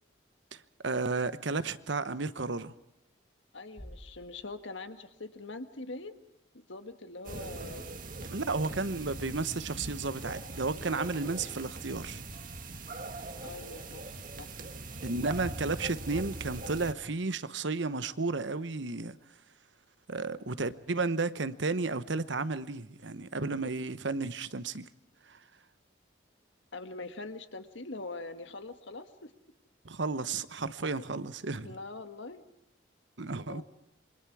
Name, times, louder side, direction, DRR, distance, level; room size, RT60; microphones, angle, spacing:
voice 1, 0.5-2.7 8.3-12.2 15.0-19.2 20.1-24.9 25.3-25.4 29.8-31.7 33.2-33.6, right 3 dB, 65° right, 1.0 m, -33 dB
voice 2, 3.5-6.1 6.5-7.9 13.4-14.5 26.7-29.3 31.6-32.4 33.5-33.6, left 3 dB, 75° left, 1.7 m, -43 dB
Bass drum, 3.8-5.5, equal, 5° right, 1.3 m, -52 dB
sound 1, 7.2-16.9, right 2 dB, 45° right, 1.8 m, -41 dB
27.5 x 24.5 x 4.8 m
head